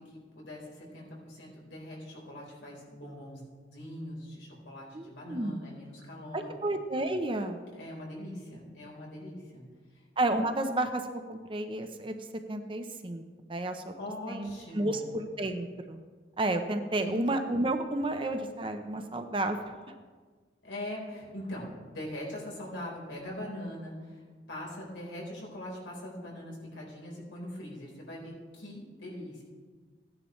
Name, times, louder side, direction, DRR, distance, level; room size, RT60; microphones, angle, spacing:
voice 1, 0.0-3.4 3.7-6.5 7.7-9.7 13.9-15.1 16.9-17.3 20.6-24.2 24.5-29.4, left 1 dB, 90° left, -3 dB, 4.1 m, -42 dB
voice 2, 4.9-5.6 6.3-7.6 10.2-11.0 11.3-12.1 12.5-13.2 13.5-13.9 14.3-16.0 16.4-19.8, right 1 dB, 30° right, 7 dB, 0.7 m, -31 dB
16.5 x 10.0 x 3.2 m, 1.5 s
head